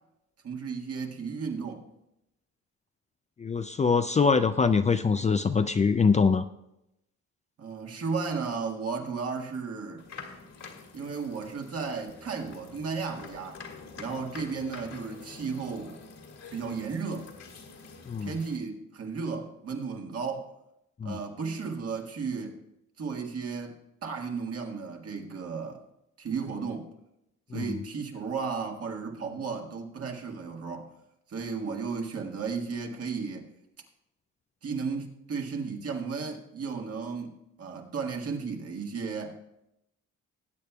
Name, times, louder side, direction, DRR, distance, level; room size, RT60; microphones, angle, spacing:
voice 1, 0.4-1.8 7.6-10.0 10.9-13.6 14.0-16.0 16.5-17.3 18.2-20.5 21.0-22.6 23.0-25.8 26.2-26.9 27.5-30.9 31.3-33.5 34.6-39.4, right 5 dB, 50° right, 1.7 m, -34 dB
voice 2, 3.4-6.5 18.1-18.3 21.0-21.2 27.5-27.8, left 5 dB, 25° left, 0.4 m, -24 dB
sound 1, 10.0-18.6, left 4 dB, 65° left, 2.2 m, -47 dB
19.0 x 8.4 x 2.3 m
cardioid pair, 90°, 30 cm